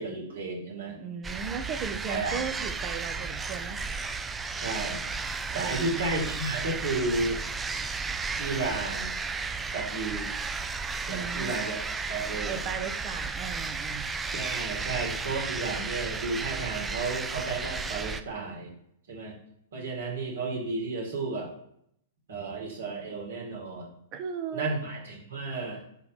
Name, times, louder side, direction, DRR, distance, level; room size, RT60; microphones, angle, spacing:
voice 1, 0.0-1.1 2.1-2.4 4.6-5.1 5.5-7.4 8.4-9.1 9.7-10.3 11.1-11.8 12.1-12.6 14.3-18.7 19.1-19.4 19.7-21.5 22.3-23.9 24.5-25.8, right 3 dB, 60° right, -1 dB, 2.6 m, -33 dB
voice 2, 1.0-3.8 5.5-6.0 11.1-11.6 12.4-14.1 24.1-24.7, right 6 dB, 35° right, 9 dB, 0.8 m, -36 dB
sound 1, 1.2-18.2, right 4 dB, 15° right, 0.4 m, -34 dB
7.0 x 3.2 x 6.1 m, 0.72 s
figure-of-eight pair, 100°, 0 cm